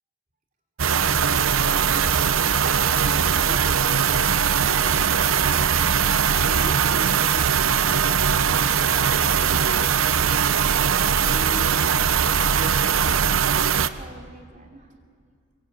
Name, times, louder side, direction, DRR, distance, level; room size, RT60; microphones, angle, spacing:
sound 1, 0.8-13.9, right 7 dB, 80° right, 0.8 m, -20 dB
voice 1, 1.1-6.0 6.4-8.3 8.7-9.9 10.3-13.1 13.5-14.9, right 1 dB, 40° right, 2 dB, 3.1 m, -41 dB
25.0 x 22.0 x 8.7 m, 2.1 s
head